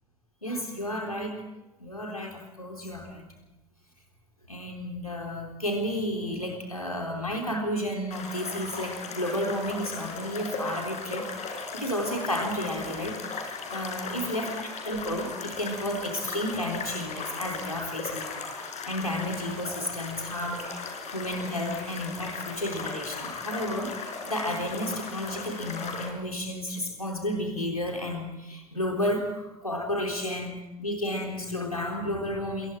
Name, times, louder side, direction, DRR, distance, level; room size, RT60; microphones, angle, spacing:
voice 1, 0.4-1.4 1.8-3.3 4.5-11.3 11.7-32.8, left 1 dB, 90° left, 2 dB, 3.7 m, -32 dB
sound 1, 8.1-26.1, left 4 dB, 40° left, 5.9 m, -37 dB
27.0 x 23.0 x 4.6 m, 0.95 s
figure-of-eight pair, 70°, 18 cm